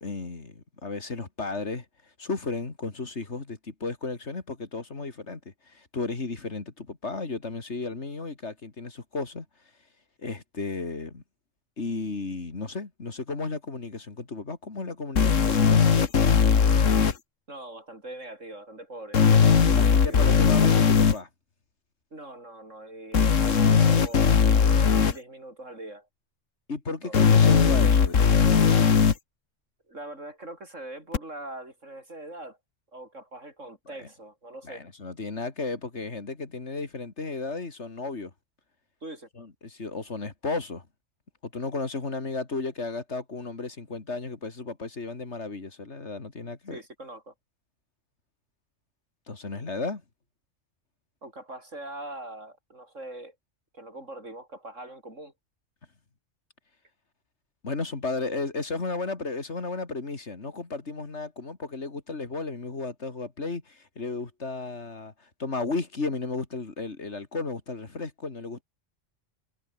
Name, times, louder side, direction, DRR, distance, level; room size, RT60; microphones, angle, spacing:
voice 1, 0.0-1.8 2.2-5.4 5.7-9.5 10.2-11.2 11.8-16.0 19.7-21.3 26.7-28.3 34.6-38.3 39.4-40.8 41.5-46.8 49.3-50.0 57.6-65.1 65.4-68.6, left 3 dB, 65° left, 2.9 m, -34 dB
sound 1, 15.2-17.1 19.1-21.1 23.1-25.1 27.1-29.1 31.1-31.2, left 6 dB, 90° left, 1.9 m, -19 dB
voice 2, 17.5-19.2 19.7-20.3 22.1-26.1 27.0-27.2 29.9-32.6 32.9-34.9 39.0-39.3 46.7-47.3 51.2-53.4 53.7-55.3, right 1 dB, 85° right, 7.8 m, -42 dB
omnidirectional pair, 1.3 m